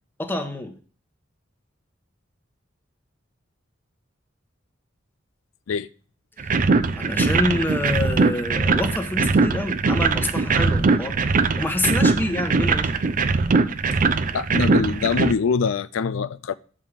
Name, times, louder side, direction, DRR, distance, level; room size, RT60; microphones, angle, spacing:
voice 1, 0.2-0.8 6.4-6.5 7.0-11.2 11.5-12.9, left 1 dB, 10° left, 1.2 m, -27 dB
sound 1, 6.4-15.3, right 4 dB, 45° right, 0.5 m, -21 dB
voice 2, 14.3-16.5, left 5 dB, 80° left, 0.4 m, -24 dB
7.6 x 5.5 x 6.5 m
head